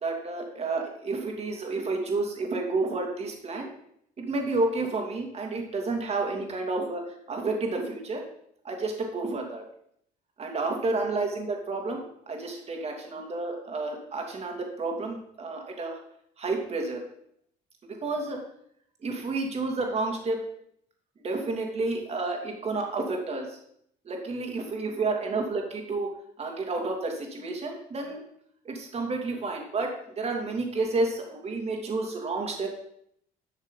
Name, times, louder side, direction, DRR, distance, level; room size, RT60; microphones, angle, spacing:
voice 1, 0.0-3.7 4.2-7.0 7.3-8.2 8.6-9.6 10.4-16.0 16.4-17.1 18.0-18.4 19.0-20.4 21.2-23.5 24.0-26.1 26.4-28.2 28.6-32.7, right 3 dB, 40° right, 2 dB, 2.7 m, -30 dB
11.5 x 6.3 x 5.4 m, 0.70 s
cardioid pair, 110°, 17 cm